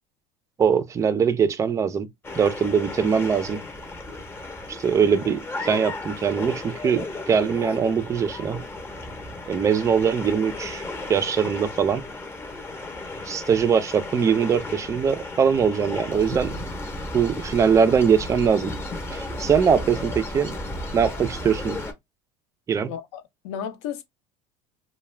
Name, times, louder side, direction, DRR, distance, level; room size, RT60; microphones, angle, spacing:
voice 1, 0.6-2.1 2.4-3.6 4.7-8.6 9.5-10.8 11.1-12.0 13.3-16.5 17.1-18.7 19.1-20.6 20.9-21.8 22.7-22.9, right 7 dB, 20° right, 0.4 m, -22 dB
sound 1, 2.2-21.9, left 2 dB, 15° left, 0.7 m, -34 dB
voice 2, 22.9-24.0, left 8 dB, 85° left, 0.8 m, -34 dB
2.3 x 2.1 x 3.2 m
supercardioid pair, 135°, 15 cm